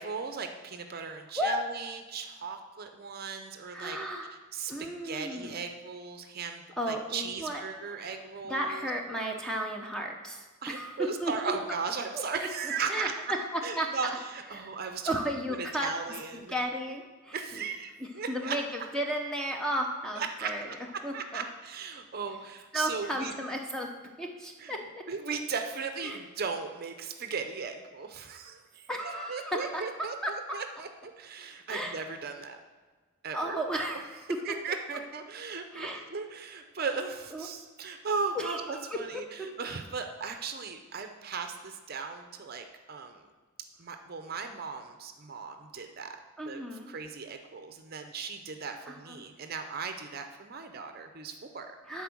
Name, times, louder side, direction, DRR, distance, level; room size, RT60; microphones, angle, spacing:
voice 1, 0.0-4.0 4.5-8.9 10.6-13.1 13.6-15.1 15.5-16.5 17.3-18.6 20.1-20.5 21.1-23.3 24.6-24.8 25.1-28.9 29.3-30.2 30.5-32.6 33.2-33.6 34.4-43.3 43.8-46.2 46.5-46.6 46.9-51.7, right 5 dB, 45° right, 6 dB, 0.6 m, -37 dB
voice 2, 3.7-4.3 4.7-5.6 6.8-7.6 8.0-8.2 8.4-11.3 12.1-12.2 12.9-13.9 14.5-14.7 15.0-15.9 16.3-17.6 18.3-20.7 21.0-21.4 22.7-23.9 24.2-24.8 26.0-26.2 28.9-29.8 30.2-30.6 31.7-32.0 33.3-34.4 35.7-36.0 37.3-37.5 38.3-39.0 46.4-47.0 48.9-49.2 51.9-52.0, right 1 dB, 5° left, 1 dB, 0.7 m, -34 dB
10.5 x 4.4 x 6.1 m, 1.3 s
head